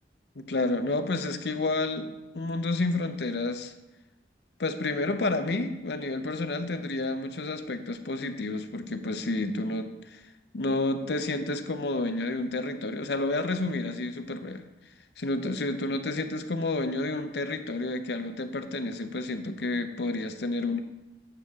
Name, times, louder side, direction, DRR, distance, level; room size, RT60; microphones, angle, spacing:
voice 1, 0.4-3.7 4.6-10.2 10.5-14.6 15.2-20.8, left 2 dB, 70° left, 8 dB, 0.7 m, -30 dB
9.0 x 7.2 x 3.6 m, 1.0 s
head